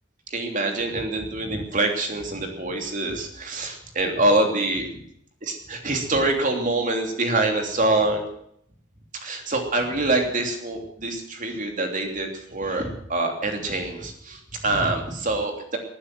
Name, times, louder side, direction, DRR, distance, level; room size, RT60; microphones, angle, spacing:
voice 1, 0.3-4.8 5.5-8.2 9.2-15.8, right 2 dB, 35° right, 4 dB, 3.1 m, -25 dB
19.5 x 9.6 x 7.7 m, 0.69 s
head